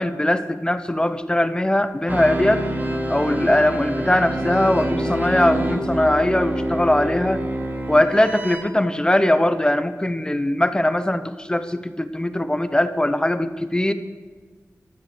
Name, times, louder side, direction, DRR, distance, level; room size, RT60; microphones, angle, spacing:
voice 1, 0.0-2.6 3.1-7.4 7.9-13.9, left 1 dB, 15° left, 11 dB, 0.8 m, -20 dB
sound 1, 2.1-8.6, right 1 dB, 35° right, 2.4 m, -26 dB
14.5 x 13.0 x 6.8 m, 1.5 s
wide cardioid pair, 90°, 5 cm